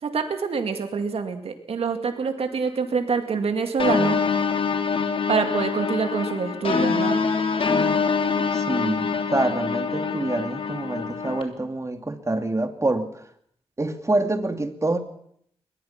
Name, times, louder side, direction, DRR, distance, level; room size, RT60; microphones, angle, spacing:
voice 1, 0.0-4.2 5.3-7.2, right 5 dB, 75° right, 6 dB, 2.3 m, -26 dB
sound 1, 3.8-11.4, left 5 dB, 65° left, 3.2 m, -24 dB
voice 2, 8.5-13.1 13.8-15.0, right 2 dB, 30° right, 7 dB, 2.6 m, -26 dB
22.0 x 20.5 x 5.9 m, 0.69 s
cardioid pair, 60°, 10 cm